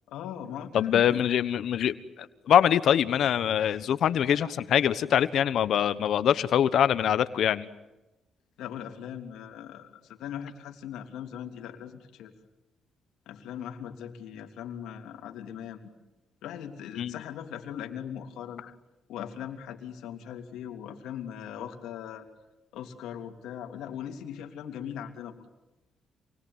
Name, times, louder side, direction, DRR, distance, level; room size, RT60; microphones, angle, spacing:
voice 1, 0.1-1.3 8.6-12.3 13.3-15.9 16.4-18.6 19.1-22.3 22.7-25.4, left 9 dB, 85° left, 4 dB, 3.1 m, -39 dB
voice 2, 0.7-7.7 17.0-17.1, left 9 dB, 70° left, 14 dB, 1.2 m, -24 dB
28.5 x 21.0 x 9.6 m, 0.99 s
cardioid pair, 90°, 0 cm